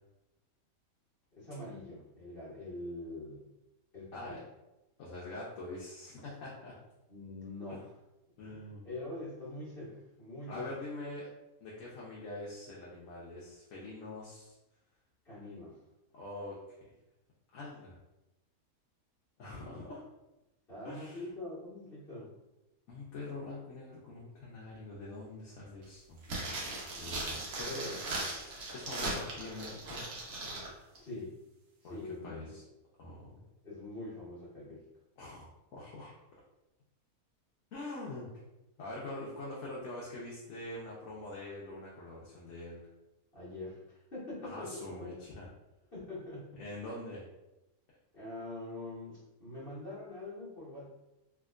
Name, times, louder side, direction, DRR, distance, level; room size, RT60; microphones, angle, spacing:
voice 1, 1.3-3.5 3.9-4.4 7.1-7.9 8.4-10.6 15.2-15.8 19.4-19.8 20.7-22.3 27.7-28.0 31.0-31.3 31.9-32.6 33.6-34.8 43.3-44.8 45.9-46.6 48.1-50.9, left 2 dB, 40° left, -9 dB, 1.3 m, -44 dB
voice 2, 5.0-6.7 7.7-7.8 8.4-8.9 10.5-11.3 11.6-14.6 16.1-16.8 17.5-18.0 19.4-20.0 20.8-21.2 22.9-26.2 26.9-28.0 28.7-30.1 31.8-32.6 33.0-33.3 35.2-36.1 37.7-38.3 38.8-42.8 44.4-45.5 46.6-47.2, left 2 dB, 65° left, -5 dB, 1.0 m, -44 dB
sound 1, 26.2-30.7 31.0-31.1, right 2 dB, 75° right, 1.3 m, -38 dB
3.4 x 2.8 x 2.4 m, 0.96 s
omnidirectional pair, 1.5 m